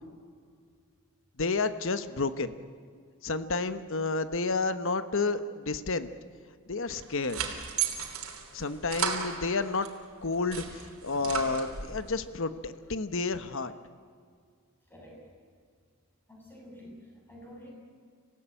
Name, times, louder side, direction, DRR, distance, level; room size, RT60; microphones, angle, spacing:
voice 1, 1.4-2.5 3.2-6.1 6.7-7.4 8.5-9.9 10.2-13.7, left 3 dB, 60° left, 11 dB, 1.1 m, -30 dB
sound 1, 6.9-9.9 10.3-12.0, right 7 dB, 70° right, 3.3 m, -35 dB
voice 2, 14.9-15.2 16.3-17.7, equal, 10° left, -1 dB, 6.4 m, -49 dB
26.5 x 17.0 x 9.0 m, 2.1 s
head